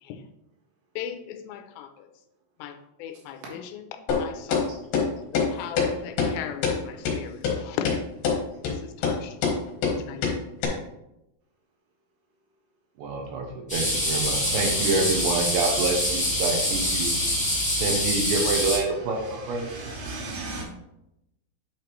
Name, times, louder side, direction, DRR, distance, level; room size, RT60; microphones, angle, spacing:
voice 1, 1.0-2.1 2.6-4.7 5.3-7.9 8.6-9.4 10.0-10.4, left 9 dB, 85° left, 8 dB, 2.9 m, -37 dB
sound 1, 4.1-4.2 4.5-4.6 4.9-5.1 5.4-5.5 5.8-5.9 6.2-6.3 6.6-6.8 7.1-7.2 7.4-7.5 7.9-8.0 8.2-8.4 8.7-8.8 9.0-9.2 9.4-9.6 9.8-10.0 10.2-10.4 10.6-10.7, left 6 dB, 65° left, 2.8 m, -23 dB
voice 2, 13.0-17.1 17.8-19.7, right 4 dB, 90° right, 1 dB, 3.2 m, -27 dB
sound 2, 13.7-18.8, left 1 dB, 5° left, 1.1 m, -25 dB
voice 3, 19.3-20.6, right 2 dB, 70° right, -2 dB, 3.4 m, -36 dB
9.0 x 5.0 x 3.1 m, 0.87 s
omnidirectional pair, 5.0 m